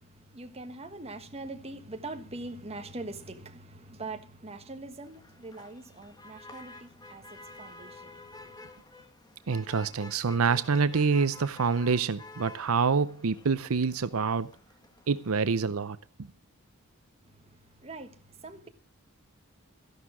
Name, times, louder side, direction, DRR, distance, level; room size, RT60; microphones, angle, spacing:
voice 1, 0.3-8.2 8.4-8.5 17.8-18.1 18.4-18.7, right 2 dB, 30° right, 1.4 m, -42 dB
Motor vehicle (road), 5.0-15.5, left 2 dB, 20° left, 1.4 m, -50 dB
voice 2, 9.5-14.5 15.1-16.3, right 5 dB, 75° right, 0.6 m, -27 dB
14.0 x 11.5 x 6.1 m
head